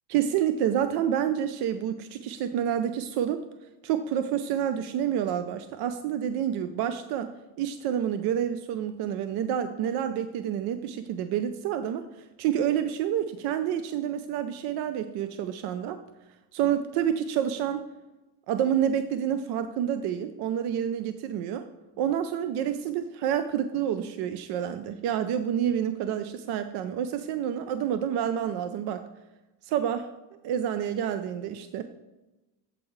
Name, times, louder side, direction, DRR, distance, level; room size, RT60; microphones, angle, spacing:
voice 1, 0.1-3.4 3.8-7.3 7.6-12.0 12.4-16.0 16.5-17.8 18.5-21.6 22.0-29.0 29.6-30.1 30.4-31.8, right 9 dB, 65° right, 10 dB, 0.6 m, -28 dB
8.5 x 7.6 x 3.1 m, 1.0 s
cardioid pair, 125°, 42 cm